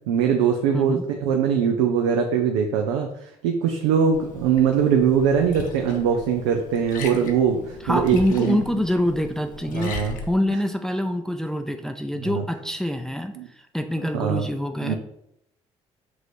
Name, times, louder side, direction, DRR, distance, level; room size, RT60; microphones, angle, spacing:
voice 1, 0.1-8.6 9.7-10.2 12.2-12.4 13.4-13.5 14.0-14.5 14.8-15.0, right 7 dB, 90° right, 3 dB, 0.4 m, -22 dB
voice 2, 0.7-1.0 7.8-9.9 10.3-15.0, left 1 dB, 5° left, 5 dB, 0.5 m, -25 dB
Liquid, 4.1-10.3, left 4 dB, 70° left, 0.7 m, -38 dB
5.9 x 2.6 x 3.2 m, 0.78 s
hypercardioid pair, 55°, 14 cm